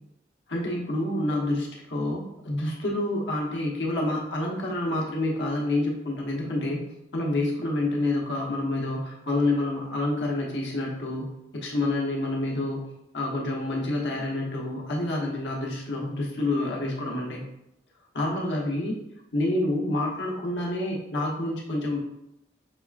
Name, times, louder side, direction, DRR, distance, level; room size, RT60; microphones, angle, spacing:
voice 1, 0.5-6.8 7.1-11.3 11.5-12.8 13.1-17.4 18.1-19.0 19.3-22.0, left 2 dB, 90° left, -2 dB, 1.0 m, -28 dB
6.1 x 2.4 x 2.4 m, 0.82 s
head